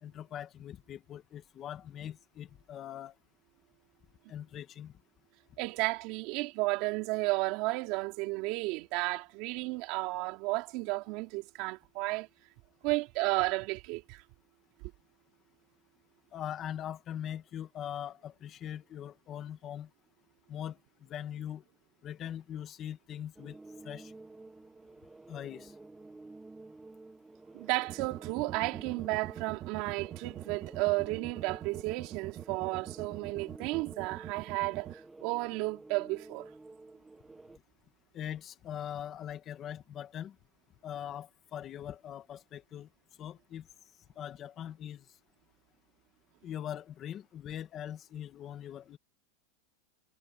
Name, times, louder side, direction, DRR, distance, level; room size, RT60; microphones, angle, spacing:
voice 1, 0.0-3.1 4.3-4.9 16.3-19.9 20.5-21.6 22.0-23.6 23.8-24.1 25.3-25.7 38.1-40.3 40.8-42.9 43.2-43.7 44.1-45.0 46.4-49.0, left 10 dB, 25° left, 1.6 m, -41 dB
voice 2, 5.6-12.3 12.8-14.2 27.5-36.5, right 23 dB, 45° right, 3.3 m, -33 dB
sound 1, 23.4-37.6, right 3 dB, 5° right, 7.9 m, -51 dB
sound 2, 27.9-34.9, right 12 dB, 30° right, 2.0 m, -43 dB
supercardioid pair, 155°, 0 cm